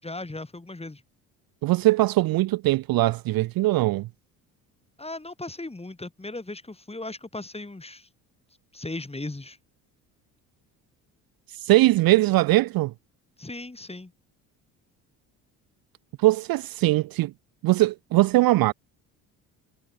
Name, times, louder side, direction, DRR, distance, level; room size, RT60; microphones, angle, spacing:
voice 1, 0.0-1.0 5.0-8.1 8.7-9.6 13.4-14.1, left 2 dB, 15° left, 6.6 m, -37 dB
voice 2, 1.6-4.1 11.5-12.9 16.2-17.3 17.6-18.7, right 18 dB, 55° right, 0.6 m, -21 dB
hypercardioid pair, 65°, 42 cm